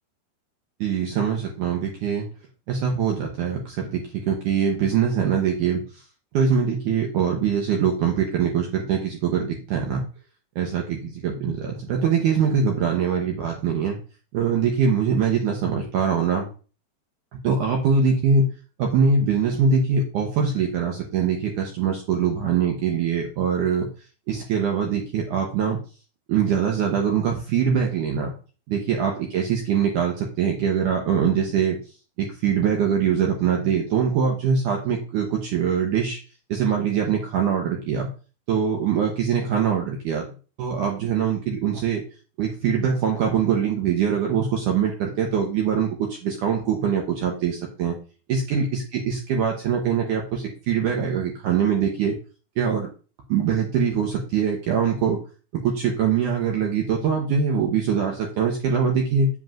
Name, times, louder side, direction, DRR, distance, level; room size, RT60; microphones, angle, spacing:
voice 1, 0.8-2.3 2.7-5.8 6.3-10.0 10.6-14.0 14.3-16.5 17.3-18.5 18.8-23.9 24.3-25.8 26.3-28.3 28.7-31.8 32.2-36.2 36.5-38.1 38.5-40.3 40.6-42.0 42.4-46.0 46.2-48.0 48.3-52.2 52.6-52.9 53.3-55.2 55.5-59.3, right 6 dB, 70° right, 1 dB, 1.9 m, -23 dB
7.8 x 7.6 x 2.5 m, 0.36 s
omnidirectional pair, 4.8 m